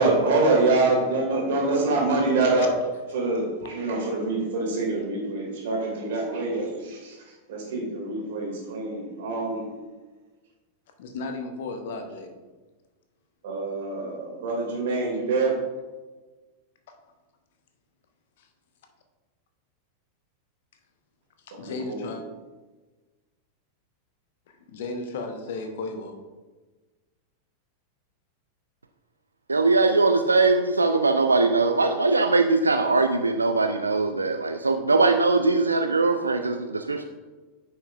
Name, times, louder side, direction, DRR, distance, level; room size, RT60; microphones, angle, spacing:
voice 1, 0.0-2.7 3.1-7.2 7.5-9.7 13.4-15.6 21.6-22.1, right 3 dB, 55° right, -2 dB, 2.2 m, -25 dB
voice 2, 11.0-12.4 18.4-18.5 21.5-22.2 24.5-26.2, left 3 dB, 55° left, 5 dB, 0.8 m, -35 dB
voice 3, 29.5-37.0, right 3 dB, 80° right, 6 dB, 0.3 m, -21 dB
9.7 x 5.4 x 2.5 m, 1.3 s
figure-of-eight pair, 90°, 0 cm